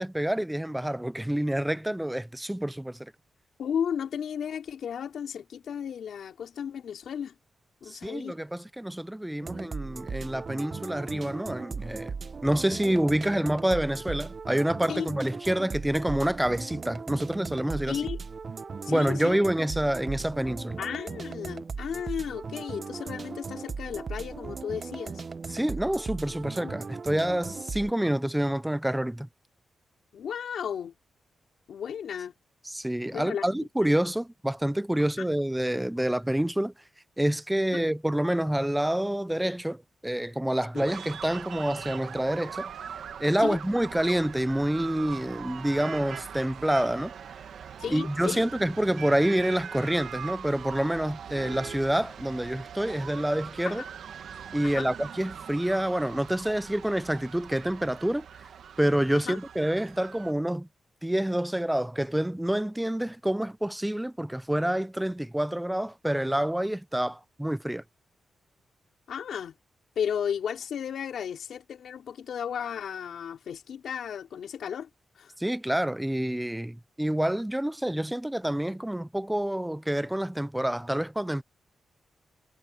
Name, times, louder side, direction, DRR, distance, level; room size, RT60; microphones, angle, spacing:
voice 1, 0.0-3.1 7.9-12.1 12.4-18.0 18.9-20.8 25.5-29.3 32.7-36.7 37.2-42.7 43.2-47.1 47.9-53.8 54.5-58.2 58.8-60.7 61.0-67.8 75.4-81.4, right 1 dB, 5° right, 0.5 m, -27 dB
voice 2, 3.6-7.3 7.8-8.4 14.9-15.1 17.9-18.2 18.8-19.4 20.8-25.2 26.6-26.7 30.1-30.9 31.7-32.3 33.1-33.4 33.8-33.9 35.2-35.3 37.7-37.8 40.7-40.9 43.4-43.6 47.8-48.4 53.6-53.9 54.6-54.9 59.1-59.4 69.1-69.6 69.9-74.9 75.2-75.3, left 8 dB, 80° left, 4.8 m, -34 dB
sound 1, 9.4-27.9, right 5 dB, 40° right, 1.1 m, -38 dB
sound 2, 40.8-60.3, right 8 dB, 80° right, 1.8 m, -41 dB
wide cardioid pair, 120°, 0 cm